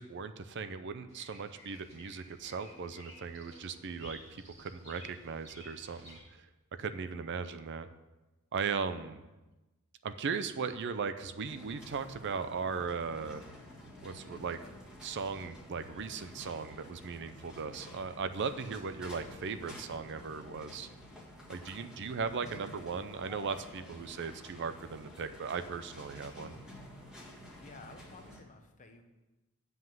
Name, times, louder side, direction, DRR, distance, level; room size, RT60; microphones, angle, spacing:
voice 1, 0.0-6.5 6.8-7.9 8.5-9.2 10.0-13.4 14.0-14.6 15.0-20.9 21.5-26.5, right 5 dB, 50° right, 11 dB, 0.5 m, -38 dB
Bird vocalization bird call bird song, 1.1-6.2, right 1 dB, 30° right, 2.7 m, -54 dB
sound 1, 11.5-28.4, equal, 5° right, 1.5 m, -51 dB
voice 2, 27.4-29.0, left 3 dB, 35° left, 5 dB, 1.0 m, -53 dB
7.8 x 5.4 x 7.5 m, 1.1 s
head